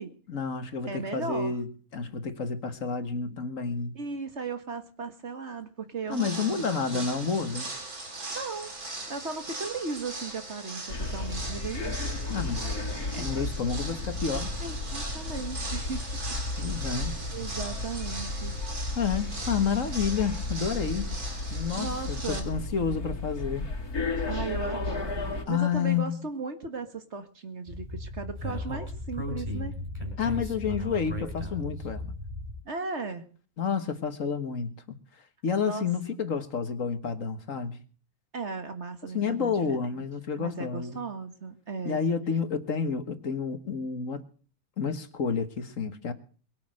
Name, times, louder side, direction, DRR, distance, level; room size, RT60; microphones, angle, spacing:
voice 1, 0.3-4.0 6.1-7.7 12.3-12.8 13.2-14.5 16.6-17.2 19.0-21.1 21.5-23.7 25.5-26.2 30.2-32.1 33.6-34.8 35.4-37.8 39.1-41.0 41.9-44.2 44.8-46.1, left 6 dB, 60° left, 1.9 m, -30 dB
voice 2, 0.9-1.6 3.9-7.1 8.3-8.7 9.1-11.9 12.8-13.4 14.6-16.4 16.8-18.6 21.8-22.5 24.3-29.7 32.7-33.2 35.6-36.2 38.3-40.1 40.4-42.1, right 4 dB, 50° right, 1.9 m, -37 dB
sound 1, 6.1-22.4, right 2 dB, 85° right, 3.9 m, -40 dB
sound 2, 10.9-25.4, left 2 dB, 85° left, 2.9 m, -33 dB
Speech, 27.7-32.6, left 1 dB, 20° right, 5.5 m, -36 dB
23.0 x 8.6 x 6.4 m
omnidirectional pair, 1.6 m